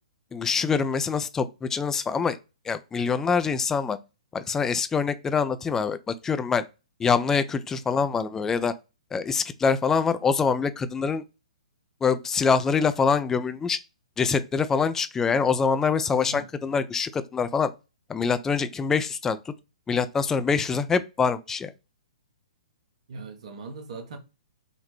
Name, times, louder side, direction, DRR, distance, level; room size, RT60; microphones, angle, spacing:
voice 1, 0.3-2.4 2.7-4.0 4.3-6.6 7.0-8.7 9.1-11.2 12.0-13.8 14.2-17.7 18.1-19.4 19.9-21.7, left 5 dB, 10° left, 0.3 m, -25 dB
voice 2, 23.1-24.2, right 3 dB, 60° right, 0.9 m, -39 dB
3.9 x 2.1 x 3.0 m
figure-of-eight pair, 125°, 4 cm